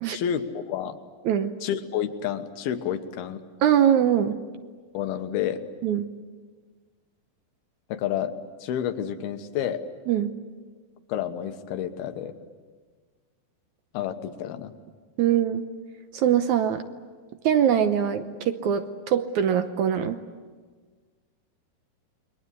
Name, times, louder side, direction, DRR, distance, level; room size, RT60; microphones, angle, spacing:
voice 1, 0.1-1.0 1.6-3.4 4.9-5.6 7.9-8.3 8.6-9.8 11.1-12.3 13.9-14.7, left 9 dB, 85° left, 8 dB, 3.2 m, -29 dB
voice 2, 3.6-4.4 5.8-6.1 10.1-10.3 15.2-15.6 16.1-16.8 17.4-20.2, right 9 dB, 75° right, 9 dB, 1.8 m, -22 dB
29.0 x 22.0 x 8.3 m, 1.5 s
omnidirectional pair, 4.3 m